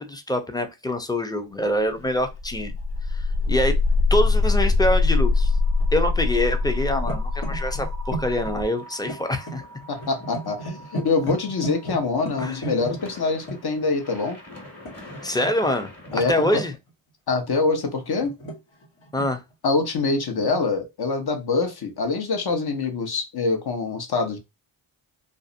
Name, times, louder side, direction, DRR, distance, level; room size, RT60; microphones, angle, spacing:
voice 1, 0.0-2.7 3.1-3.7 4.1-5.5 5.9-9.6 12.4-12.6 15.2-16.7 19.1-19.4, left 1 dB, 10° left, 0.5 m, -25 dB
sound 1, 1.9-2.1 2.6-5.0 5.3-6.5 6.7-13.6 14.6-15.7 16.1-16.9 18.0-19.5 20.4-20.6, right 2 dB, 75° left, 1.2 m, -36 dB
sound 2, 2.3-12.0, left 3 dB, 40° right, 0.4 m, -24 dB
sound 3, 8.7-16.3, left 2 dB, 30° left, 1.3 m, -47 dB
voice 2, 9.9-14.4 16.1-16.6 17.3-18.3 19.6-24.4, left 4 dB, 55° left, 0.9 m, -25 dB
2.5 x 2.1 x 2.5 m
cardioid pair, 40°, 47 cm